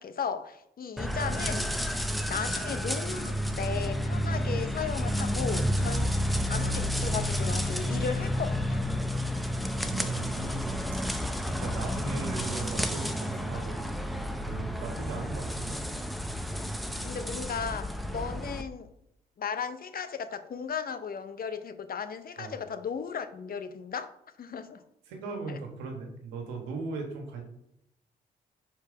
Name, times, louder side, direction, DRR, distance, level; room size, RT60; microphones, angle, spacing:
voice 1, 0.0-1.8 2.3-6.1 6.5-8.8 17.0-18.9 19.4-24.1 24.4-24.8 25.5-25.6, left 6 dB, 50° left, 10 dB, 0.8 m, -36 dB
sound 1, 1.0-18.6, equal, ahead, 0.7 m, -31 dB
voice 2, 9.8-13.8 14.4-15.8 16.9-17.1 22.4-22.6 25.1-27.4, right 4 dB, 85° right, 2 dB, 1.3 m, -38 dB
4.6 x 4.6 x 4.7 m, 0.78 s
hypercardioid pair, 45°, 20 cm